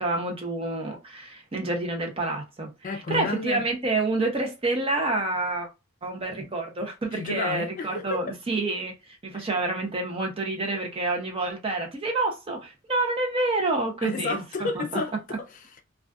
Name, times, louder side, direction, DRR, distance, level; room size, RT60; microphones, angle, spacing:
voice 1, 0.0-5.7 6.0-8.9 9.2-14.8, right 2 dB, 30° right, 0.6 m, -28 dB
voice 2, 2.8-3.6 7.1-8.2 9.3-9.5 14.0-15.8, left 3 dB, 40° left, 0.4 m, -32 dB
2.4 x 2.3 x 2.3 m
head